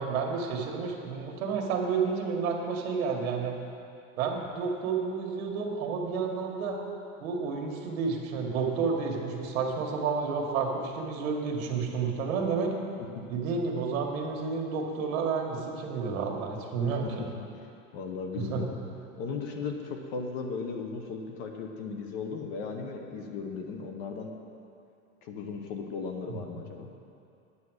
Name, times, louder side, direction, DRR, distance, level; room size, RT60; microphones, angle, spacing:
voice 1, 0.0-3.5 4.2-6.8 7.2-12.7 13.3-17.2 18.5-18.6 26.3-26.4, right 5 dB, 65° right, 1 dB, 1.8 m, -30 dB
voice 2, 16.9-17.5 17.9-18.7 19.2-24.4 25.2-26.9, left 5 dB, 35° left, 3 dB, 0.9 m, -36 dB
9.7 x 8.1 x 6.3 m, 2.5 s
supercardioid pair, 170°, 42 cm